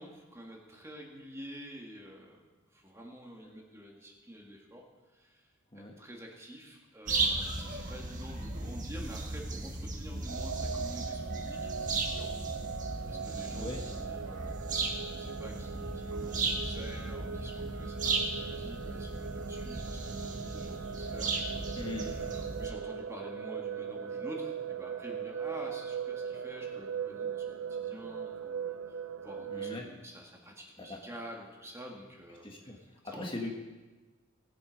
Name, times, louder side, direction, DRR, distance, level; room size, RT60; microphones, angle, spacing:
voice 1, 0.0-2.4 2.7-4.9 5.1-5.5 5.7-12.5 13.1-14.6 14.9-33.3, equal, 15° right, 0 dB, 2.0 m, -48 dB
sound 1, 7.1-22.7, right 3 dB, 40° right, 1.6 m, -36 dB
sound 2, 10.3-29.8, right 7 dB, 70° right, 0.5 m, -39 dB
voice 2, 21.7-22.1 29.5-29.9 30.8-31.0 32.4-32.8 33.0-33.5, left 2 dB, 25° left, 0 dB, 1.6 m, -39 dB
20.0 x 7.9 x 5.3 m, 1.2 s
head